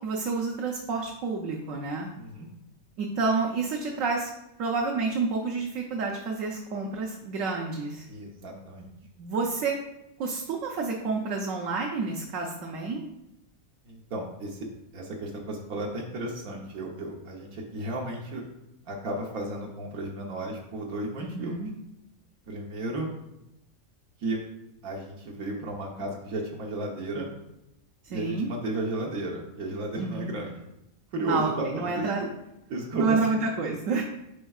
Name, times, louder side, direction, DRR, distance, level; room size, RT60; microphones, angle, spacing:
voice 1, 0.0-2.1 3.0-4.3 4.6-8.1 9.2-9.8 10.2-13.1 21.2-21.7 28.1-28.5 30.0-30.3 31.3-32.3 33.0-34.0, right 4 dB, 70° right, 0 dB, 1.1 m, -29 dB
voice 2, 2.2-2.5 8.1-8.9 13.9-14.6 14.9-18.4 18.9-21.6 22.5-23.1 24.2-24.4 24.8-27.3 28.1-30.5 31.1-32.1 32.7-33.2, right 2 dB, 90° right, -1 dB, 1.4 m, -33 dB
9.9 x 4.4 x 2.4 m, 0.88 s
omnidirectional pair, 1.4 m